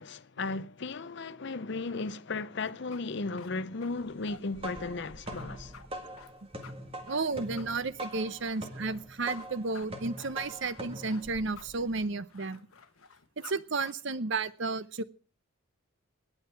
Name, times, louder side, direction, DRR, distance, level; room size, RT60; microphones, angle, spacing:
voice 1, 0.0-5.7, left 3 dB, 50° left, 0.6 m, -35 dB
sound 1, 2.7-13.5 13.8-13.9, left 6 dB, 75° left, 1.3 m, -53 dB
sound 2, 4.3-12.0, right 1 dB, 25° right, 1.8 m, -43 dB
voice 2, 7.1-12.6 13.4-15.0, right 3 dB, 55° right, 0.7 m, -32 dB
18.0 x 9.5 x 4.6 m
head